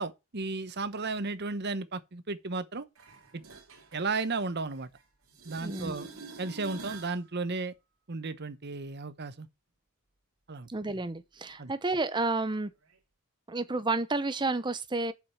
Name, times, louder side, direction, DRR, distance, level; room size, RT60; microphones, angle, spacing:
voice 1, 0.0-2.8 3.3-3.4 3.9-4.9 5.4-6.1 6.4-7.7 8.1-9.5 10.5-10.7 11.6-11.7, right 3 dB, 50° right, 0.9 m, -34 dB
sound 1, 3.0-5.0 5.3-7.2 12.9-13.0, right 3 dB, 80° right, 2.9 m, -47 dB
voice 2, 5.6-6.1 10.7-12.7 13.5-15.1, right 3 dB, 20° right, 0.7 m, -31 dB
7.5 x 5.6 x 7.2 m
head